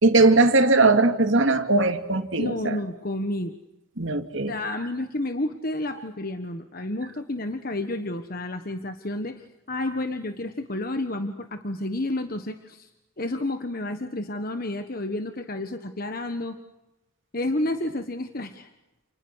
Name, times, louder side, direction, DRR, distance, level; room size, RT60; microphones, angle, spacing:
voice 1, 0.0-2.8 4.0-4.5, right 3 dB, 65° right, 6 dB, 2.8 m, -19 dB
voice 2, 2.4-3.5 4.5-9.4 9.7-12.9 13.2-16.6 17.3-18.7, left 1 dB, 45° left, 7 dB, 1.4 m, -30 dB
30.0 x 29.5 x 6.3 m, 0.97 s
head